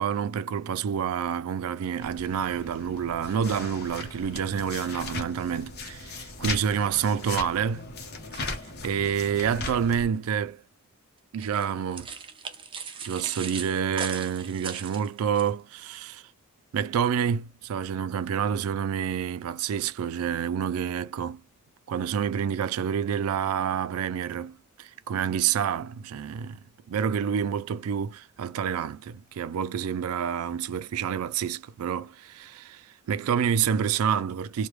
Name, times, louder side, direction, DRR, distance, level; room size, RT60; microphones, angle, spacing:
voice 1, 0.0-7.8 8.3-8.5 8.8-10.6 11.3-12.1 13.0-16.2 16.7-21.4 21.9-34.7, right 8 dB, 85° right, 0.3 m, -28 dB
sound 1, 2.0-10.1, left 3 dB, 50° left, 0.8 m, -38 dB
sound 2, 11.4-15.5, right 6 dB, 25° right, 0.5 m, -38 dB
3.1 x 2.2 x 3.1 m
head